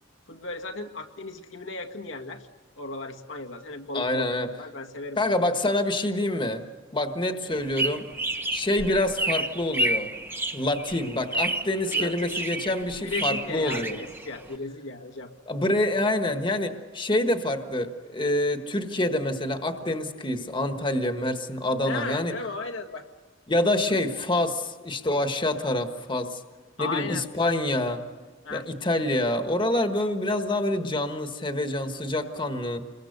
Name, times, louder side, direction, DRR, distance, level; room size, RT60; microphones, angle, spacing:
voice 1, 0.3-2.5 2.8-5.6 11.8-12.3 13.0-15.3 21.8-23.1 26.8-27.5 28.4-28.7, left 3 dB, 85° left, 3 dB, 1.9 m, -36 dB
voice 2, 3.9-4.5 5.2-6.6 6.9-8.0 8.5-10.1 10.5-14.0 15.5-22.3 23.5-26.4 26.8-28.0 28.5-32.8, left 1 dB, 25° left, 6 dB, 1.4 m, -26 dB
sound 1, 7.5-14.5, right 1 dB, 10° right, 1.0 m, -30 dB
27.5 x 22.0 x 6.7 m, 1.4 s
head